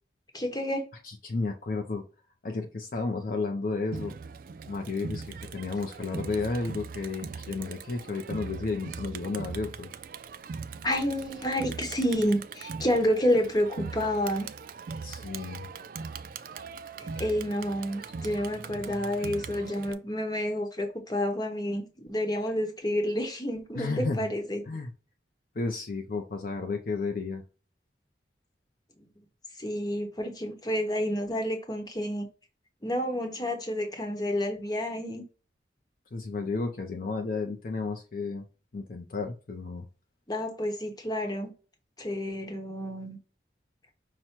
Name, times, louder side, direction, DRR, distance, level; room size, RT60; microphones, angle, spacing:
voice 1, 0.3-0.9 10.8-14.5 17.0-24.6 29.6-32.3 32.8-35.2 40.3-41.5 42.0-43.2, equal, 20° left, 0.9 m, -29 dB
voice 2, 1.0-2.0 2.4-4.2 4.7-9.9 15.0-15.7 23.8-24.3 24.7-24.9 25.6-27.4 36.1-38.5 38.7-39.9, left 3 dB, 50° left, 0.5 m, -32 dB
Crowd, 3.9-19.9, right 5 dB, 50° right, 0.3 m, -40 dB
5.7 x 2.1 x 4.4 m
head